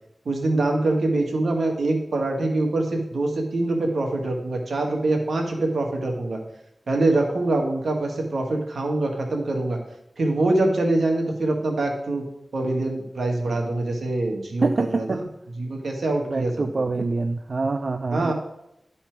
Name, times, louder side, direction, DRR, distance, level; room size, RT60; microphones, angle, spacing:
voice 1, 0.2-6.4 6.9-9.8 10.2-12.2 12.5-15.2 15.6-16.5 18.1-18.3, right 2 dB, 90° right, 2 dB, 1.5 m, -24 dB
voice 2, 14.6-15.2 16.3-18.3, right 3 dB, 65° right, 8 dB, 0.4 m, -25 dB
11.5 x 4.3 x 4.5 m, 0.80 s
cardioid pair, 50°, 0 cm